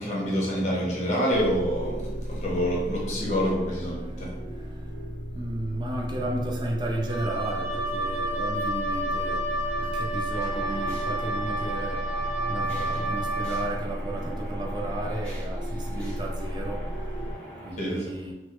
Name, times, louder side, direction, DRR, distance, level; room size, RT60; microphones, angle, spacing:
voice 1, 0.0-4.5 17.8-18.1, equal, 40° left, -4 dB, 0.8 m, -27 dB
sound 1, 1.3-17.3, equal, 70° left, 0.5 m, -34 dB
voice 2, 4.5-4.9 5.3-9.4 9.8-12.0 12.5-16.8 17.6-18.3, right 1 dB, 25° right, -1 dB, 0.4 m, -33 dB
Wind instrument woodwind instrument, 7.0-13.7, right 1 dB, 85° right, 0.8 m, -30 dB
sound 2, 10.3-17.7, right 1 dB, 5° left, 0.8 m, -42 dB
3.2 x 2.1 x 2.9 m, 1.1 s
head